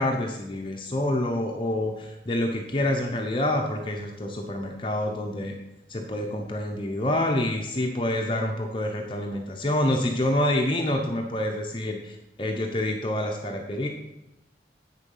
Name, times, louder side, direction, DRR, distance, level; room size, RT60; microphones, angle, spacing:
voice 1, 0.0-5.6 5.9-13.9, left 1 dB, 30° left, 2 dB, 0.8 m, -27 dB
8.4 x 6.9 x 5.5 m, 0.93 s
head